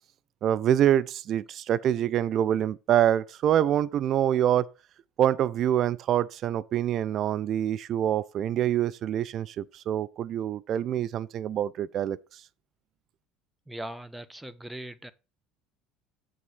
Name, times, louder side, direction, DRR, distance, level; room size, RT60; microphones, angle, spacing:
voice 1, 0.4-4.7 5.2-12.2, right 10 dB, 50° right, 0.5 m, -25 dB
voice 2, 13.7-15.1, right 1 dB, 5° right, 1.0 m, -39 dB
7.6 x 6.4 x 6.0 m
hypercardioid pair, 70°, 0 cm